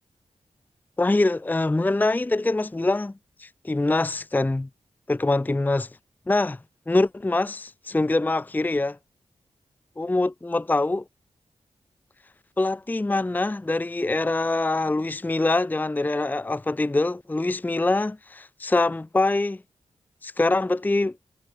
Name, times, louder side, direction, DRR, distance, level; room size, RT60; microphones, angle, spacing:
voice 1, 1.0-3.1 3.4-4.7 5.1-5.9 6.3-6.6 6.9-9.0 10.0-11.0 12.6-19.6 20.2-21.1, left 2 dB, 15° left, 0.6 m, -24 dB
wide cardioid pair, 85°, 11 cm